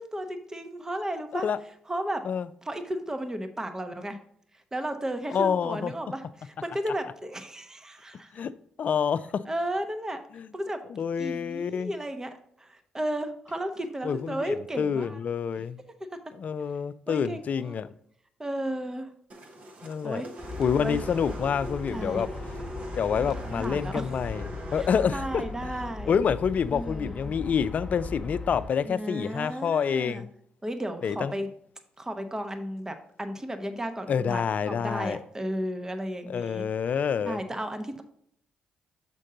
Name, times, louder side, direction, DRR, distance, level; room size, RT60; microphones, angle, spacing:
voice 1, 0.0-1.5 1.9-2.2 2.6-4.2 4.7-8.5 9.5-10.2 10.5-10.8 11.2-15.2 17.1-17.8 18.4-19.1 20.0-20.3 20.8-21.0 21.9-22.3 23.2-24.1 24.8-26.2 26.7-27.3 28.8-30.3 30.6-31.5 32.0-36.6 37.2-38.0, right 1 dB, 20° right, 0.9 m, -34 dB
voice 2, 5.3-5.9 8.3-8.5 8.8-9.4 10.3-10.5 10.9-11.9 14.0-15.8 16.4-17.9 19.8-20.2 20.6-22.3 23.0-25.7 26.1-30.3 31.0-31.3 34.1-35.2 36.3-37.4, left 7 dB, 55° left, 0.4 m, -27 dB
sound 1, 19.3-27.6, right 1 dB, 50° right, 1.2 m, -43 dB
Aircraft, 20.4-28.7, left 3 dB, 15° left, 0.9 m, -38 dB
6.4 x 5.3 x 3.7 m
supercardioid pair, 50°, 3 cm